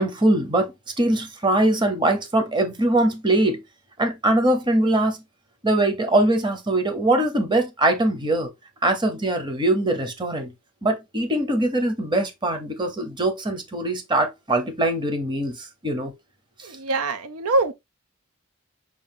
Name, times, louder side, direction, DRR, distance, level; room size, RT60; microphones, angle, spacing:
voice 1, 0.0-3.6 4.0-5.2 5.6-8.5 8.8-10.5 10.8-16.1, right 1 dB, 20° right, 0.8 m, -22 dB
voice 2, 16.6-17.7, right 2 dB, 80° right, 0.6 m, -23 dB
6.1 x 2.4 x 3.5 m
head